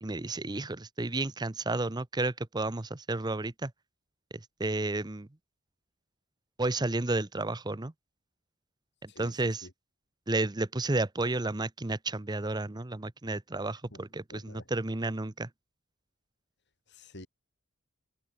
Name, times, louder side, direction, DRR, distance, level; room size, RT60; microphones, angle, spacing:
voice 1, 0.0-3.7 4.6-5.3 6.6-7.9 9.0-9.7 10.3-15.5, right 2 dB, 20° right, 0.7 m, -32 dB
voice 2, 9.1-9.7 14.3-14.7 16.9-17.3, left 1 dB, 50° left, 5.0 m, -49 dB
head